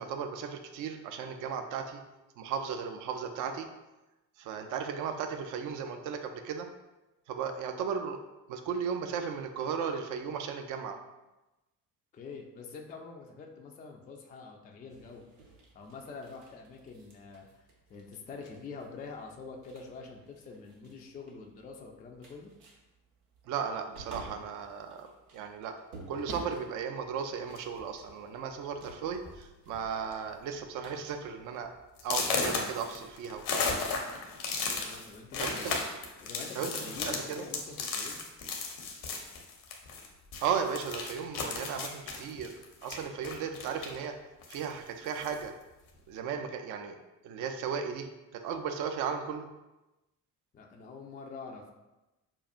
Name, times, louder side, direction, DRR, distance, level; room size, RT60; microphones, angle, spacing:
voice 1, 0.0-2.0 2.4-3.7 4.4-6.7 7.3-8.2 8.5-11.0 23.5-25.7 26.1-31.7 32.0-33.7 35.4-35.8 36.6-37.4 40.4-44.1 44.5-45.5 46.1-47.0 47.2-49.5, right 6 dB, 40° right, 6 dB, 0.4 m, -35 dB
voice 2, 12.1-15.2 15.7-22.5 34.8-35.8 36.2-38.2 50.5-51.7, left 4 dB, 20° left, 1 dB, 0.3 m, -46 dB
sound 1, 14.9-32.9, right 3 dB, 80° right, 0.6 m, -53 dB
sound 2, 27.5-27.8 28.6-28.7 29.1-29.4 29.7-30.1 30.5-30.6 31.1-31.2 32.0-40.1 40.3-44.0 44.4-45.4, left 4 dB, 60° left, 0.8 m, -35 dB
5.3 x 2.3 x 2.5 m, 1.0 s
figure-of-eight pair, 40°, 48 cm